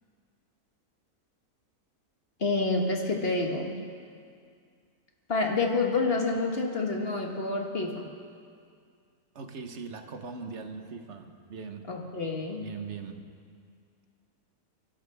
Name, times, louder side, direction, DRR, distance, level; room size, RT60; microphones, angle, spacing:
voice 1, 2.4-3.8 5.3-8.1 11.9-12.6, left 3 dB, 40° left, 1 dB, 1.6 m, -28 dB
voice 2, 9.3-11.9 12.5-13.3, right 5 dB, 50° right, 6 dB, 1.2 m, -40 dB
29.5 x 11.5 x 3.4 m, 2.2 s
omnidirectional pair, 1.6 m